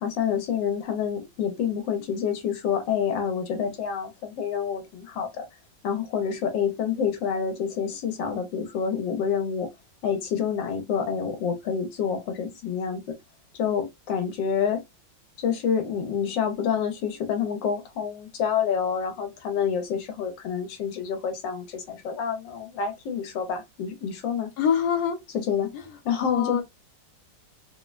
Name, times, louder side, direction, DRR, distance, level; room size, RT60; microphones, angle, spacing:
voice 1, 0.0-5.4 5.8-9.7 10.0-13.2 13.5-14.8 15.4-24.5 25.5-25.7 26.0-26.6, left 7 dB, 85° left, 1.4 m, -28 dB
voice 2, 24.6-25.2 25.7-25.8 26.2-26.6, left 7 dB, 65° left, 1.2 m, -25 dB
3.6 x 2.1 x 2.3 m
omnidirectional pair, 2.0 m